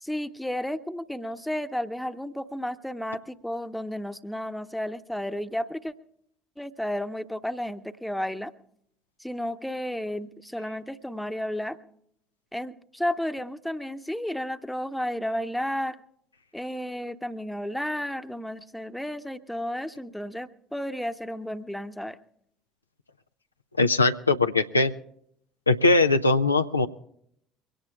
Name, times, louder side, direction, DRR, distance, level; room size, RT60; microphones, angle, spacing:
voice 1, 0.0-5.9 6.6-8.5 9.2-11.8 12.5-16.0 16.5-22.2, left 1 dB, 5° left, 11 dB, 0.9 m, -32 dB
voice 2, 23.8-24.9 25.7-26.9, left 3 dB, 85° left, 7 dB, 0.4 m, -21 dB
23.0 x 17.5 x 2.3 m, 0.69 s
figure-of-eight pair, 60°, 0 cm